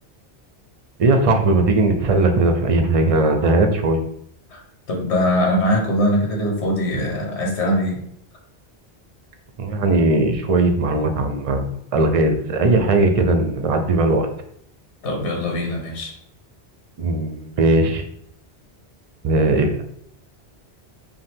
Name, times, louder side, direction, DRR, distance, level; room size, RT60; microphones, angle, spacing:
voice 1, 1.0-4.0 9.6-14.3 17.0-18.0 19.2-19.9, right 2 dB, 45° right, 6 dB, 0.5 m, -18 dB
voice 2, 4.9-8.0 15.0-16.1, left 1 dB, 80° left, 0 dB, 1.3 m, -21 dB
5.5 x 2.2 x 3.5 m, 0.70 s
omnidirectional pair, 1.1 m